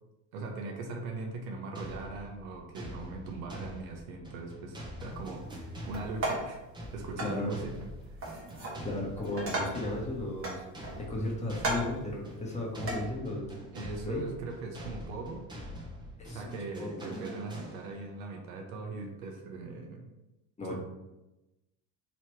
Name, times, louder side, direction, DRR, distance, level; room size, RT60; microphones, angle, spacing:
voice 1, 0.3-6.6 6.9-7.9 13.7-15.4 16.3-20.1 20.6-20.8, right 3 dB, 80° right, 1 dB, 0.9 m, -40 dB
sound 1, 1.7-18.2, equal, 10° right, 0.8 m, -45 dB
sound 2, 5.9-6.6 7.2-7.4 8.2-8.8 9.2-9.9 10.4-11.1 11.6-12.0 12.8-13.0, right 1 dB, 30° right, 1.2 m, -35 dB
voice 2, 7.2-7.5 8.8-10.6 11.0-13.5 14.0-14.2 16.2-16.5 16.8-17.1 20.6-20.8, left 2 dB, 15° left, -2 dB, 1.1 m, -35 dB
3.2 x 2.8 x 4.6 m, 0.99 s
supercardioid pair, 115°, 41 cm